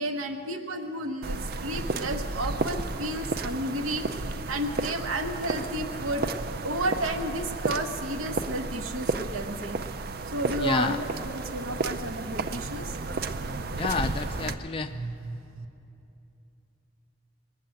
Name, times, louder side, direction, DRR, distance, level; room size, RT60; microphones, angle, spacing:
voice 1, 0.0-4.0 4.5-9.8 10.3-13.0 14.9-15.4, right 1 dB, 90° right, 6 dB, 1.1 m, -32 dB
sound 1, 1.2-14.5, right 3 dB, 50° right, 0.5 m, -32 dB
voice 2, 10.6-11.0 13.8-14.9, left 4 dB, 25° left, 7 dB, 0.3 m, -29 dB
21.0 x 7.6 x 8.9 m, 2.8 s
head